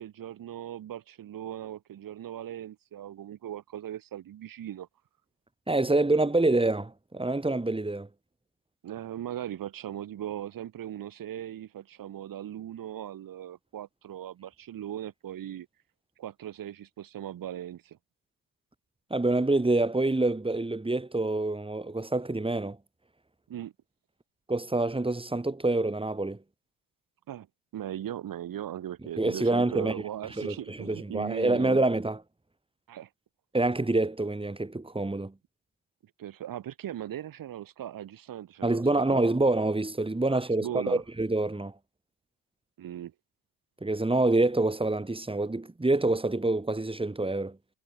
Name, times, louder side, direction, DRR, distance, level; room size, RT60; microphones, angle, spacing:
voice 1, 0.0-4.9 8.8-15.7 16.2-18.0 23.5-23.7 27.3-27.5 27.7-31.8 32.9-33.1 36.2-39.2 40.3-41.0 42.8-43.1, right 11 dB, 55° right, 7.8 m, -39 dB
voice 2, 5.7-8.1 19.1-22.8 24.5-26.4 29.2-29.9 30.4-32.2 33.5-35.3 38.6-41.7 43.8-47.6, right 2 dB, 15° right, 4.8 m, -26 dB
hypercardioid pair, 55°, 40 cm